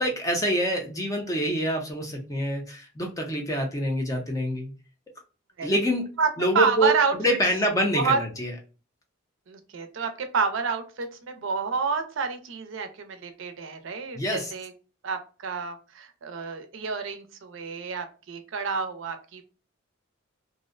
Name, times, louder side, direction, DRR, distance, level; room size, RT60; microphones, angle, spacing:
voice 1, 0.0-4.7 5.6-6.1 6.4-8.5 14.2-14.5, equal, 15° left, 2 dB, 0.5 m, -26 dB
voice 2, 6.5-7.1 8.0-8.2 9.5-14.7 15.0-19.4, right 5 dB, 70° right, 7 dB, 0.5 m, -28 dB
2.5 x 2.0 x 2.4 m, 0.35 s
head